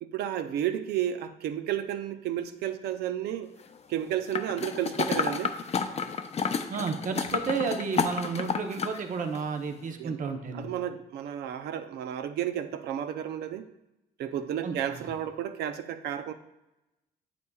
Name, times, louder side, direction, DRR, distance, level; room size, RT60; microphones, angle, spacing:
voice 1, 0.0-3.5 3.9-5.6 10.0-10.2 10.5-13.7 14.2-16.3, right 10 dB, 80° right, 9 dB, 0.6 m, -32 dB
sound 1, 4.3-9.0 9.4-9.5, left 5 dB, 40° left, 0.6 m, -30 dB
voice 2, 6.7-10.7 14.6-15.1, right 5 dB, 50° right, 5 dB, 0.9 m, -32 dB
8.3 x 8.0 x 2.4 m, 0.94 s
cardioid pair, 85°, 17 cm